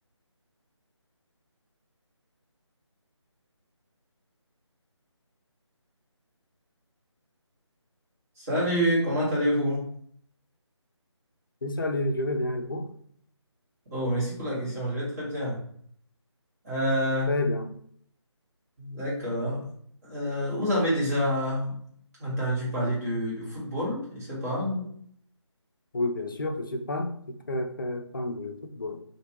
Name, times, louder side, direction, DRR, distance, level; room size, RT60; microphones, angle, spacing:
voice 1, 8.4-9.9 13.9-15.6 16.6-17.4 18.8-19.6 20.0-21.8 22.2-24.9, equal, 30° right, -7 dB, 1.3 m, -27 dB
voice 2, 11.6-12.9 17.3-17.7 25.9-29.0, left 1 dB, 45° left, 5 dB, 0.4 m, -30 dB
3.0 x 2.5 x 2.9 m, 0.62 s
figure-of-eight pair, 155°, 15 cm